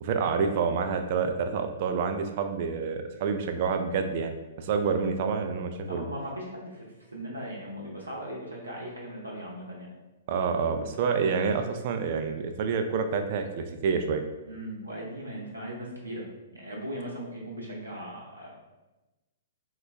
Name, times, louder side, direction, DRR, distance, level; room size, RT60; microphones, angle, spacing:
voice 1, 0.0-6.0 10.3-14.2, right 5 dB, 45° right, 6 dB, 0.3 m, -28 dB
voice 2, 5.9-9.9 14.5-16.3 16.5-18.5, equal, 80° right, -3 dB, 0.7 m, -38 dB
3.9 x 2.1 x 3.2 m, 1.1 s
figure-of-eight pair, 110°, 0 cm